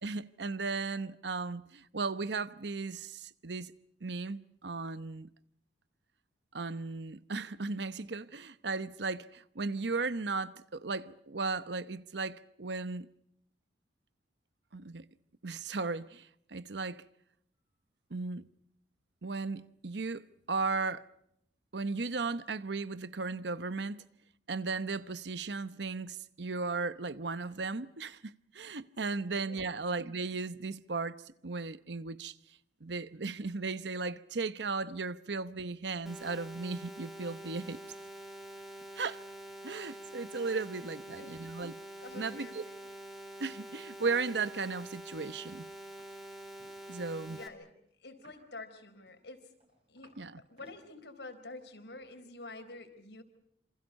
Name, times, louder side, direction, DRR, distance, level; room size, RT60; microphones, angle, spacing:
voice 1, 0.0-3.7 4.0-5.3 6.5-13.1 14.7-15.0 15.4-17.0 18.1-18.4 19.2-21.0 21.7-24.0 24.5-31.2 31.4-32.3 32.8-37.8 39.0-39.2 39.6-41.7 42.1-42.6 43.4-45.7 46.9-47.4 50.2-50.3, right 4 dB, 80° right, 0.9 m, -36 dB
sound 1, 36.1-47.5, right 1 dB, ahead, 2.9 m, -47 dB
voice 2, 40.9-41.4 42.0-42.8 46.9-47.0 47.3-47.7 48.0-49.5 49.9-53.2, left 2 dB, 75° left, 4.4 m, -48 dB
sound 2, 46.0-46.1 46.4-46.8 48.1-48.5 49.1-50.2 50.5-50.8 51.5-51.7, equal, 35° right, 7.8 m, -60 dB
28.0 x 27.0 x 5.4 m
head